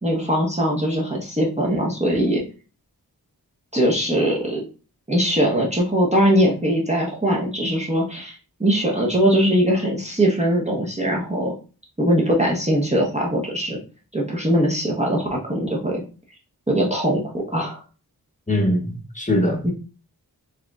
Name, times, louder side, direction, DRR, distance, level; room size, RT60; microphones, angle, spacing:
voice 1, 0.0-2.4 3.7-4.6 5.1-11.5 12.0-13.8 14.1-16.0 16.7-17.8 19.6-19.7, equal, 20° right, -3 dB, 0.8 m, -21 dB
voice 2, 18.5-19.6, left 1 dB, 20° left, 1 dB, 1.0 m, -21 dB
4.7 x 3.0 x 2.3 m, 0.36 s
wide cardioid pair, 60°, 38 cm